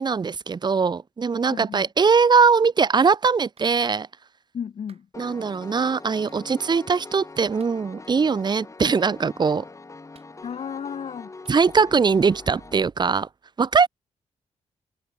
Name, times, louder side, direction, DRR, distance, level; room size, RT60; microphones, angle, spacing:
voice 1, 0.0-4.1 5.2-9.6 11.5-13.3 13.6-13.9, right 5 dB, 40° right, 1.0 m, -21 dB
voice 2, 1.5-1.9 4.5-5.1 10.4-11.3, left 7 dB, 60° left, 2.1 m, -33 dB
Clapping, 3.6-3.7 4.9-5.1 6.3-6.4 7.6-7.8 8.8-9.3 10.1-10.7 11.5-11.6, right 6 dB, 60° right, 6.8 m, -59 dB
Piano, 5.1-12.7, left 3 dB, 25° left, 7.2 m, -43 dB
wide cardioid pair, 110°, 12 cm